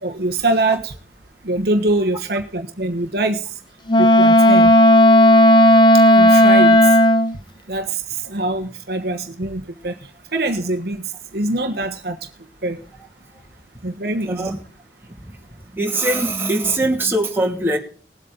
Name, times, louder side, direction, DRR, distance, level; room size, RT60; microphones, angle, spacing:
voice 1, 0.0-0.9 1.4-3.4 4.0-4.7 6.2-6.8 7.7-9.9 10.3-11.0 11.3-12.2 12.6-12.8 13.8-14.5, right 2 dB, 60° right, 5 dB, 1.2 m, -23 dB
Wind instrument woodwind instrument, 3.9-7.3, equal, 25° left, 0.7 m, -11 dB
voice 2, 14.3-14.6 15.0-15.4 15.6-17.8, right 2 dB, 15° right, 0 dB, 2.6 m, -22 dB
20.0 x 8.4 x 3.9 m, 0.41 s
head